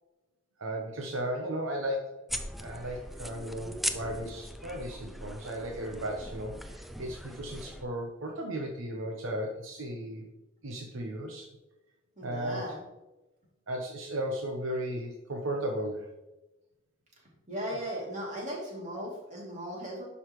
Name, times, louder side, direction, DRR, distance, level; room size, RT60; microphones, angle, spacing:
voice 1, 0.6-10.3 10.6-11.5 12.2-12.8 13.7-16.1, right 1 dB, 70° right, 2 dB, 0.9 m, -35 dB
sound 1, 2.3-7.8, equal, ahead, 0.4 m, -39 dB
voice 2, 12.2-12.8 17.5-20.1, equal, 35° right, -3 dB, 2.8 m, -37 dB
11.0 x 5.6 x 3.1 m, 1.0 s
head